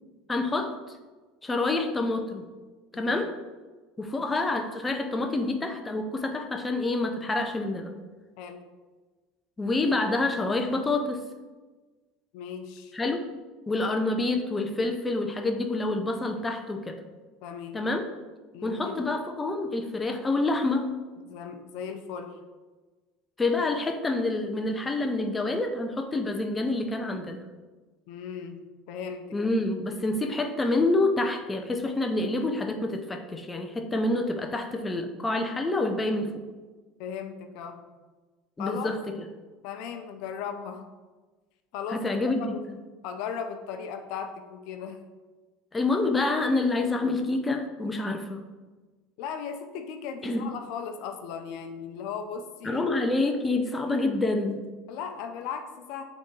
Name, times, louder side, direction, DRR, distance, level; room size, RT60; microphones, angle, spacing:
voice 1, 0.3-0.7 1.4-2.4 2.9-3.3 4.0-7.9 9.6-11.2 12.9-13.2 13.7-17.0 17.7-18.0 18.6-20.9 23.4-27.4 29.3-36.3 38.6-39.1 41.9-42.8 45.7-48.4 50.2-50.5 52.6-54.7, left 2 dB, 15° left, 5 dB, 0.5 m, -27 dB
voice 2, 2.9-3.2 8.4-8.6 12.3-13.0 17.4-17.8 18.5-19.1 21.2-22.4 28.1-29.3 37.0-37.8 38.6-38.9 39.6-40.8 41.7-42.1 42.4-42.6 43.0-45.0 49.2-52.9 54.9-56.0, left 7 dB, 70° left, 6 dB, 0.6 m, -37 dB
8.2 x 3.6 x 3.2 m, 1.3 s
supercardioid pair, 120°, 0 cm